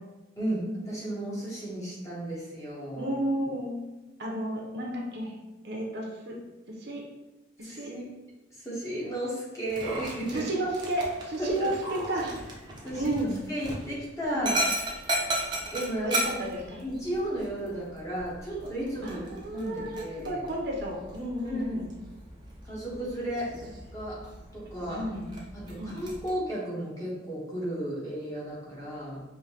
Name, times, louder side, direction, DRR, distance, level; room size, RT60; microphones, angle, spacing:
voice 1, 0.4-3.1 7.6-8.1 8.6-10.4 11.4-11.7 12.8-13.1 13.5-14.6 15.7-16.1 16.8-19.2 19.5-20.4 21.4-21.8 22.6-23.5 23.9-24.2 24.5-25.0 25.5-29.2, right 1 dB, 15° left, -6 dB, 1.1 m, -34 dB
voice 2, 2.9-3.8 4.2-5.3 5.6-6.3 6.8-7.0 7.6-7.9 10.3-12.3 12.9-13.4 14.3-14.5 16.0-16.8 19.0-21.9 24.9-25.3 25.8-26.0, right 1 dB, 60° right, -1 dB, 0.7 m, -32 dB
Dog, 9.7-26.3, right 1 dB, 25° right, 0.7 m, -37 dB
5.1 x 2.8 x 2.8 m, 1.1 s
head